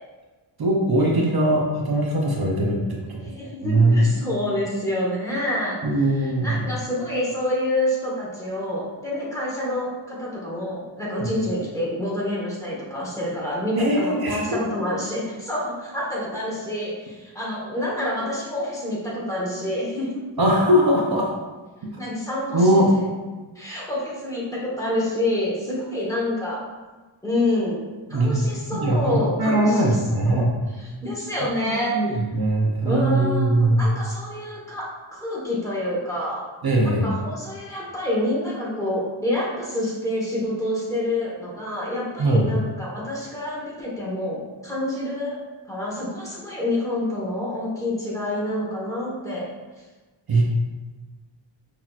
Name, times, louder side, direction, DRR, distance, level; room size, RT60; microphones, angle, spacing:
voice 1, 0.6-3.2 3.6-4.1 5.8-6.6 11.2-11.3 13.8-14.4 20.4-21.3 21.9-22.1 22.5-22.9 28.1-28.4 28.7-30.5 31.6-33.9 36.6-37.1 42.2-42.5 50.3-50.4, right 1 dB, 50° right, -1 dB, 0.6 m, -20 dB
voice 2, 3.2-5.8 6.2-20.2 22.0-22.7 23.5-26.6 27.2-29.9 30.3-30.5 30.8-32.0 32.8-36.4 36.8-45.4 45.7-49.5, left 1 dB, 5° left, -6 dB, 1.1 m, -27 dB
5.8 x 2.8 x 2.4 m, 1.3 s
wide cardioid pair, 145°, 49 cm